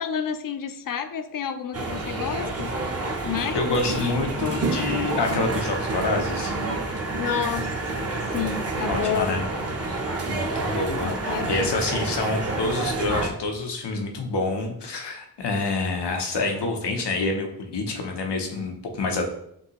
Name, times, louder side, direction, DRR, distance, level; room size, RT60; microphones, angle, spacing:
voice 1, 0.0-2.8 3.2-4.1 7.2-9.4 11.0-11.8, left 8 dB, 55° left, 10 dB, 0.5 m, -30 dB
sound 1, 1.7-13.3, right 2 dB, 35° right, 0.8 m, -28 dB
voice 2, 3.5-6.5 8.9-9.4 10.3-19.2, left 3 dB, 90° left, 3 dB, 0.8 m, -27 dB
5.2 x 2.7 x 2.9 m, 0.72 s
cardioid pair, 55°, 40 cm